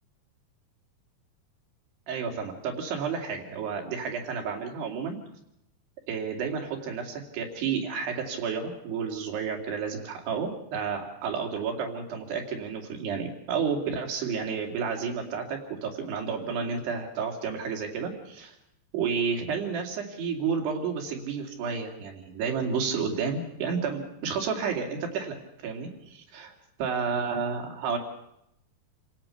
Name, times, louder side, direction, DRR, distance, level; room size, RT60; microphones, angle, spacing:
voice 1, 2.1-5.2 6.1-18.6 18.9-26.5 26.8-28.0, right 6 dB, 80° right, 3 dB, 4.5 m, -31 dB
28.5 x 17.0 x 5.8 m, 0.79 s
omnidirectional pair, 4.7 m